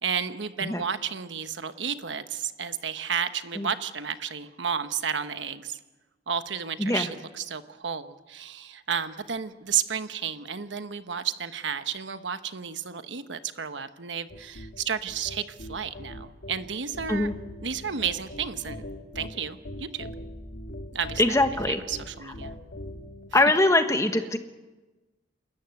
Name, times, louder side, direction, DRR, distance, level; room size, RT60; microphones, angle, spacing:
voice 1, 0.0-5.8 6.3-17.3 17.6-18.8 19.1-20.1 20.9-21.2 21.7-22.5, right 7 dB, 80° right, 10 dB, 1.1 m, -32 dB
sound 1, 14.3-23.3, left 1 dB, 70° left, 2.9 m, -41 dB
voice 2, 21.2-21.8 23.3-24.4, left 2 dB, 15° left, 8 dB, 1.3 m, -22 dB
28.5 x 13.5 x 9.5 m, 1.2 s
head